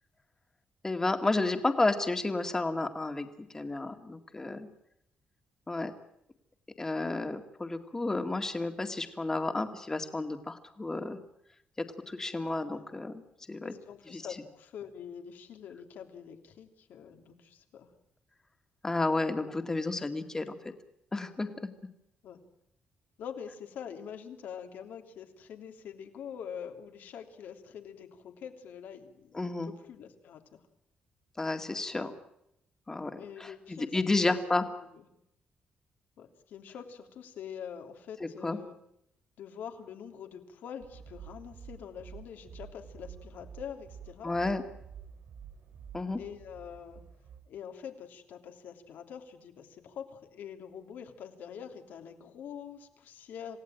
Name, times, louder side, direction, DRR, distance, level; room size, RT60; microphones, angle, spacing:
voice 1, 0.8-3.3 3.5-4.7 5.7-5.9 6.8-11.2 12.1-13.2 13.5-13.7 14.1-14.2 18.8-20.6 21.1-21.7 29.3-29.7 31.4-32.1 32.9-34.6 38.2-38.6 44.2-44.6 45.9-46.2, left 2 dB, 15° left, 7 dB, 2.0 m, -31 dB
voice 2, 13.6-17.9 22.2-22.4 23.2-30.6 33.2-34.3 34.9-35.1 36.2-38.8 39.4-44.3 46.1-47.0 47.5-53.6, left 8 dB, 80° left, 5 dB, 3.0 m, -45 dB
sound 1, 40.8-47.4, right 7 dB, 60° right, 4.8 m, -49 dB
27.5 x 17.0 x 9.0 m, 0.81 s
cardioid pair, 150°, 3 cm